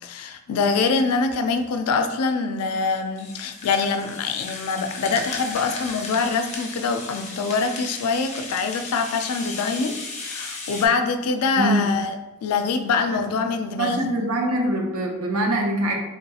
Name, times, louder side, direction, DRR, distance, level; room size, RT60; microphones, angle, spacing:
voice 1, 0.0-12.1 12.4-14.1, left 4 dB, 85° left, 7 dB, 0.3 m, -24 dB
Rattle (instrument), 3.2-10.9, left 3 dB, 30° left, 0.5 m, -35 dB
voice 2, 13.8-15.9, right 1 dB, 80° right, 1 dB, 0.6 m, -23 dB
3.5 x 2.3 x 2.8 m, 0.99 s
head